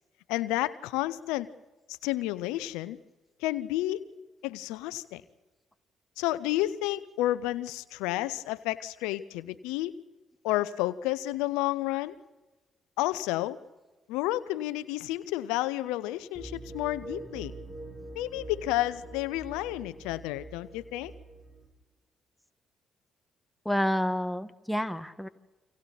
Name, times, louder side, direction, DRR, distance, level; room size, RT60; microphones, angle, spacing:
voice 1, 0.3-1.5 1.9-3.0 3.4-4.1 4.4-5.2 6.2-9.9 10.4-12.2 13.0-13.6 14.1-17.5 18.1-21.1, left 16 dB, 85° left, 15 dB, 0.7 m, -31 dB
sound 1, 16.3-21.7, right 2 dB, 15° right, 6.7 m, -44 dB
voice 2, 23.6-25.3, equal, 5° left, 9 dB, 1.6 m, -29 dB
29.0 x 26.0 x 4.2 m, 1.2 s
hypercardioid pair, 50°, 0 cm